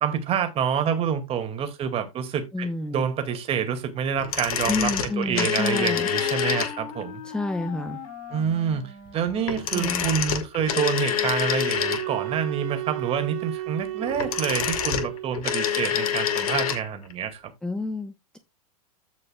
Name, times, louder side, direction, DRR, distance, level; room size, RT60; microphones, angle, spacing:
voice 1, 0.0-7.2 8.3-17.5, right 8 dB, 30° right, 2.0 m, -27 dB
voice 2, 2.5-3.0 4.7-6.1 7.2-8.0 9.7-10.1 17.6-18.4, left 3 dB, 5° left, 0.9 m, -29 dB
sound 1, 4.2-7.0 9.4-12.3 14.0-16.9 17.1-17.2, left 8 dB, 65° left, 1.9 m, -26 dB
Wind instrument woodwind instrument, 4.2-10.4, left 6 dB, 50° left, 6.0 m, -42 dB
sound 2, 11.7-15.6, right 15 dB, 55° right, 2.1 m, -33 dB
15.5 x 5.4 x 2.3 m
hypercardioid pair, 100°, 20 cm